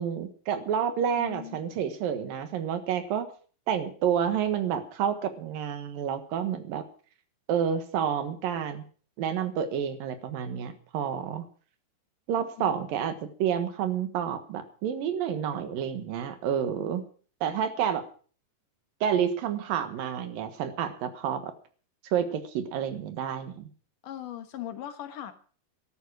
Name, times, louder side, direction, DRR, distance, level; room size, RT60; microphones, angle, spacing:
voice 1, 0.0-3.3 3.7-6.8 7.5-8.8 9.2-11.4 12.3-17.0 17.4-18.0 19.0-21.5 22.1-23.7, right 8 dB, 80° right, 10 dB, 3.2 m, -29 dB
voice 2, 1.2-1.6 12.6-12.8 24.0-25.3, left 11 dB, 70° left, 9 dB, 2.7 m, -39 dB
13.5 x 12.5 x 6.2 m, 0.42 s
omnidirectional pair, 4.0 m